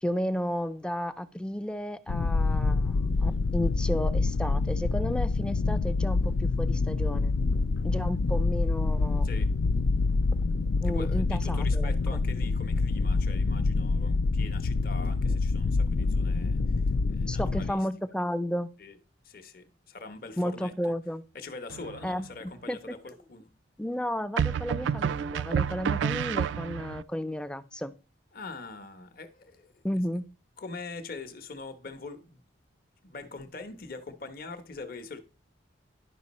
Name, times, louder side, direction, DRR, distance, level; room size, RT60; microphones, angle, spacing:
voice 1, 0.0-7.4 7.8-9.3 10.8-12.2 17.3-18.7 20.4-21.2 22.0-23.0 23.8-27.9 29.8-30.3, equal, 5° left, 0.4 m, -33 dB
sound 1, 2.1-17.7, left 3 dB, 70° left, 0.4 m, -26 dB
voice 2, 10.8-17.9 18.8-19.0 19.2-20.7 21.3-23.5 28.3-29.8 30.6-32.4 33.0-35.2, left 3 dB, 50° left, 0.9 m, -43 dB
sound 2, 21.7-22.3 24.4-27.0, right 7 dB, 70° right, 0.3 m, -29 dB
11.0 x 5.3 x 4.2 m
head